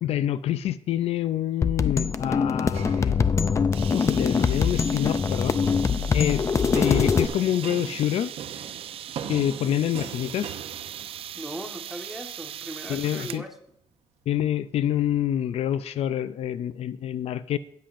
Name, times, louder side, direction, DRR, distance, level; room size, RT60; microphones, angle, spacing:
voice 1, 0.0-3.2 3.9-5.6 6.1-6.5 6.7-8.3 9.3-10.5 12.9-13.4 14.3-17.6, left 11 dB, 80° left, 14 dB, 0.5 m, -27 dB
sound 1, 1.6-7.3, left 5 dB, 30° left, 0.4 m, -23 dB
sound 2, 2.7-3.8 4.5-5.0 6.8-11.6, right 8 dB, 90° right, 0.8 m, -40 dB
sound 3, 3.7-13.5, right 10 dB, 65° right, 0.4 m, -39 dB
voice 2, 11.3-13.5, right 1 dB, ahead, 1 dB, 1.4 m, -39 dB
18.5 x 7.7 x 2.6 m, 0.68 s
wide cardioid pair, 150°, 10 cm